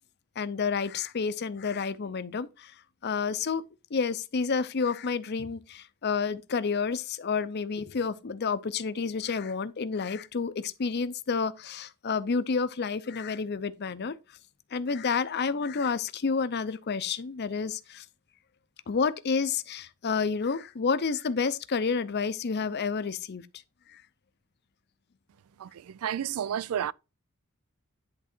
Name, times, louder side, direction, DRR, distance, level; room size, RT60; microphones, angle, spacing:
voice 1, 0.4-2.7 3.0-3.6 3.9-14.1 14.7-18.1 18.9-23.5 23.9-24.0, left 5 dB, 50° left, 0.6 m, -30 dB
voice 2, 25.6-26.9, right 9 dB, 85° right, 0.4 m, -31 dB
10.5 x 3.7 x 4.4 m
head